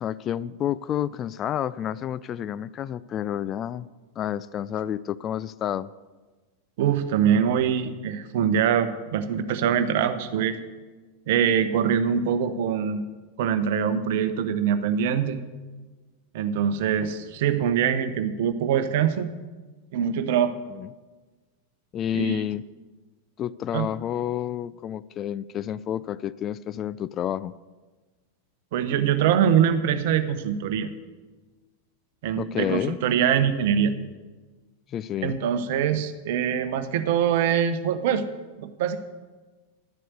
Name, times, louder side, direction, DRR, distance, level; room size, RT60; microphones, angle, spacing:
voice 1, 0.0-3.9 4.2-5.9 20.8-20.9 21.9-22.6 23.4-27.5 32.4-33.0 34.9-35.4, left 10 dB, 30° left, 17 dB, 0.3 m, -29 dB
voice 2, 6.8-10.6 11.3-13.0 13.4-15.4 16.3-19.3 19.9-20.5 22.1-22.4 23.7-23.9 28.7-30.9 32.2-33.9 35.2-38.3 38.6-39.0, right 8 dB, 50° right, 11 dB, 0.9 m, -23 dB
11.5 x 7.6 x 8.1 m, 1.3 s
figure-of-eight pair, 90°, 0 cm